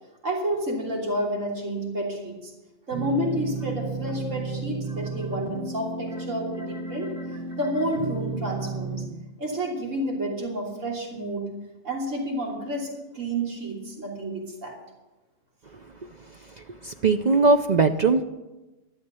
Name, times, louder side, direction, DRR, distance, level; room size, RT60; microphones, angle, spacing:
voice 1, 0.2-2.5 2.9-7.1 7.6-9.0 9.4-11.5 11.8-12.9 13.1-14.8, right 1 dB, 70° right, -2 dB, 3.4 m, -30 dB
sound 1, 2.9-9.1, right 3 dB, 30° right, 3.4 m, -33 dB
voice 2, 16.8-18.2, right 3 dB, 50° right, 7 dB, 0.5 m, -20 dB
13.0 x 12.0 x 6.8 m, 1.1 s
omnidirectional pair, 1.4 m